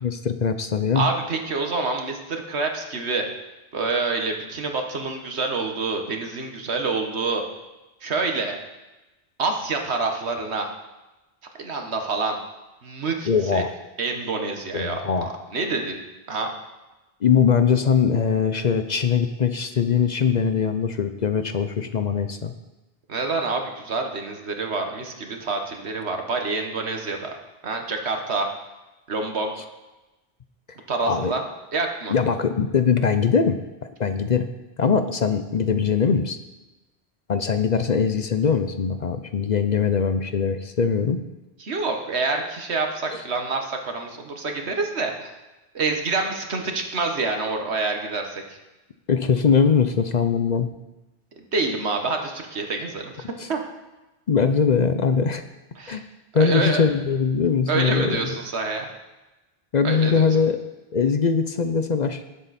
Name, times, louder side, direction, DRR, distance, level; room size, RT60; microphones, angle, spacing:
voice 1, 0.0-1.1 13.3-13.7 14.7-15.3 17.2-22.5 31.1-31.3 32.1-33.6 34.0-34.5 34.8-36.4 37.3-41.2 43.1-43.2 49.1-50.7 54.3-55.4 55.9-56.0 56.3-58.2 59.7-60.5 60.9-62.2, left 6 dB, 50° left, 9 dB, 0.7 m, -21 dB
voice 2, 0.9-3.3 3.7-7.4 8.0-8.6 9.4-10.7 11.6-12.4 12.8-13.6 14.0-16.0 16.3-16.5 23.1-27.3 27.6-28.5 29.1-29.5 30.9-31.4 31.7-32.1 41.6-45.3 45.7-48.4 51.5-53.6 55.8-56.0 56.4-56.8 57.7-58.9 59.8-60.4, right 3 dB, 85° right, 4 dB, 1.7 m, -27 dB
18.5 x 7.5 x 4.2 m, 1.1 s
omnidirectional pair, 1.1 m